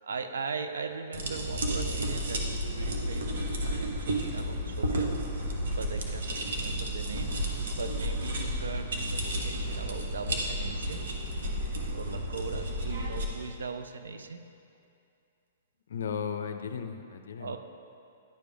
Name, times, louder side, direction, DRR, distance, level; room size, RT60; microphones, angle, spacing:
voice 1, 0.0-5.2 5.7-7.5 7.8-11.1 11.9-14.5 17.4-17.6, right 5 dB, 90° right, 8 dB, 0.5 m, -39 dB
sound 1, 1.1-13.3, equal, 75° right, 1.1 m, -32 dB
voice 2, 15.9-17.6, left 7 dB, 75° left, 8 dB, 0.4 m, -35 dB
10.5 x 5.2 x 3.4 m, 2.5 s
hypercardioid pair, 140°, 0 cm